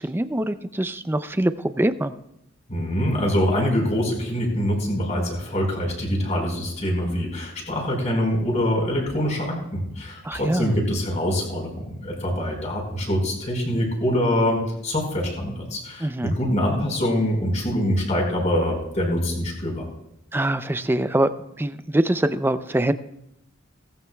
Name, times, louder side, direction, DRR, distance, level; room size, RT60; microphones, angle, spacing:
voice 1, 0.0-2.1 10.2-10.7 16.0-16.3 20.3-21.3 21.6-22.9, right 1 dB, 10° right, 11 dB, 0.5 m, -23 dB
voice 2, 2.7-19.9, equal, 35° left, 0 dB, 4.6 m, -24 dB
18.0 x 15.5 x 2.3 m, 0.82 s
head